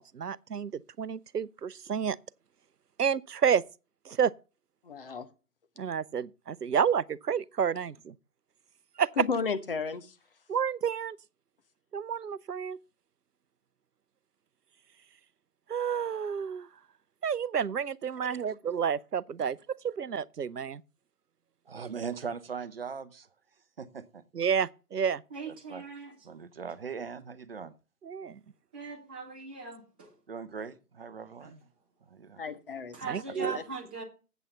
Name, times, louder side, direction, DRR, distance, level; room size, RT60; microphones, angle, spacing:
voice 1, 0.0-2.2 3.0-3.6 4.1-4.3 5.8-8.1 9.0-9.1 10.5-11.2 11.9-12.8 15.7-16.7 17.2-19.6 19.8-20.8 24.3-25.2 28.0-28.4 33.0-33.5, right 7 dB, 90° right, 0.6 m, -30 dB
voice 2, 4.8-5.3 9.2-10.1 32.4-32.9 33.5-33.6, left 5 dB, 35° left, 1.0 m, -33 dB
voice 3, 21.7-23.3 23.8-24.2 25.5-25.8 26.2-27.7 30.3-31.7 32.1-32.4 33.4-33.6, right 6 dB, 40° right, 0.8 m, -40 dB
voice 4, 25.3-26.1 28.7-30.1 31.4-31.5 32.9-34.0, right 4 dB, 5° right, 0.7 m, -40 dB
8.4 x 8.0 x 6.7 m
figure-of-eight pair, 140°, 46 cm